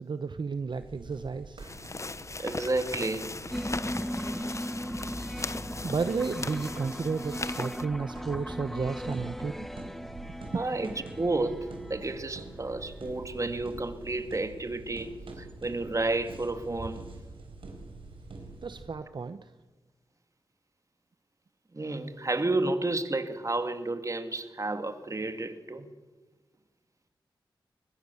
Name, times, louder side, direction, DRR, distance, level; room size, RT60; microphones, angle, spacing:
voice 1, 0.0-1.6 5.8-9.7 18.6-19.5, right 4 dB, 60° right, 0.9 m, -32 dB
sound 1, 0.7-18.9, right 3 dB, 80° right, 4.2 m, -46 dB
sound 2, 1.6-7.8, left 3 dB, 35° left, 1.0 m, -39 dB
voice 2, 2.4-3.3 10.5-17.0 21.7-25.9, right 2 dB, 35° right, 2.1 m, -31 dB
sound 3, 3.5-12.5, equal, 5° left, 1.0 m, -37 dB
23.0 x 20.5 x 7.0 m
cardioid pair, 60°, 9 cm